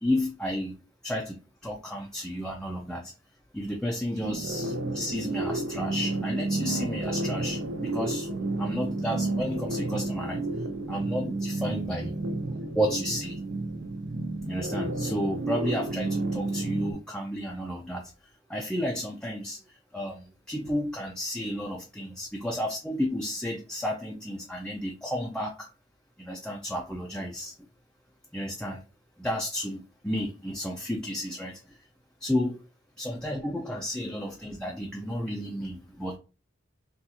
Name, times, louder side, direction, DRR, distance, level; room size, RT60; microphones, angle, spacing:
voice 1, 0.0-0.8 1.0-3.1 3.5-10.4 10.9-12.1 12.7-13.4 14.4-18.1 18.5-25.7 26.2-27.5 28.3-28.8 29.2-31.8 32.2-32.6 33.0-36.2, equal, 5° left, -1 dB, 0.4 m, -32 dB
sound 1, 4.2-16.9, right 2 dB, 65° right, 0.5 m, -31 dB
3.7 x 2.4 x 2.7 m, 0.34 s
head